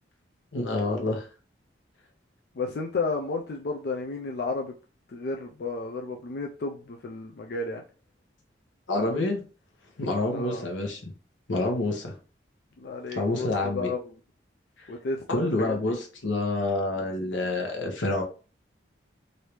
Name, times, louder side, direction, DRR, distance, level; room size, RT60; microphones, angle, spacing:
voice 1, 0.5-1.3 8.9-9.4 10.0-11.0 11.5-12.1 13.1-13.9 15.3-18.2, left 2 dB, 90° left, 2 dB, 1.0 m, -27 dB
voice 2, 2.6-4.7 5.1-7.8 10.3-10.7 12.8-14.0 14.9-16.0, left 3 dB, 55° left, 2 dB, 0.4 m, -32 dB
3.3 x 2.7 x 3.0 m, 0.36 s
head